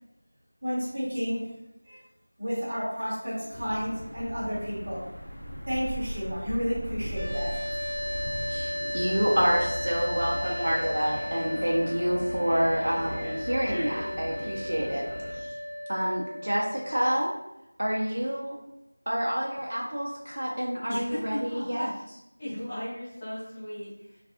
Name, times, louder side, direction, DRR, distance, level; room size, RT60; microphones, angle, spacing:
voice 1, 0.6-1.4 1.9-2.0 2.4-5.0 5.6-7.6, equal, 25° right, -10 dB, 1.0 m, -31 dB
sound 1, 3.5-15.4, equal, 25° left, 1.2 m, -37 dB
sound 2, 7.1-17.2, left 1 dB, 75° left, 0.9 m, -35 dB
voice 2, 8.5-15.0 15.4-15.5 15.9-17.3 17.8-18.6 19.1-21.9, equal, 60° right, -4 dB, 0.4 m, -28 dB
voice 3, 20.9-22.0 22.4-24.2, left 1 dB, 10° left, -16 dB, 0.7 m, -36 dB
2.3 x 2.2 x 2.7 m, 0.87 s
figure-of-eight pair, 175°, 0 cm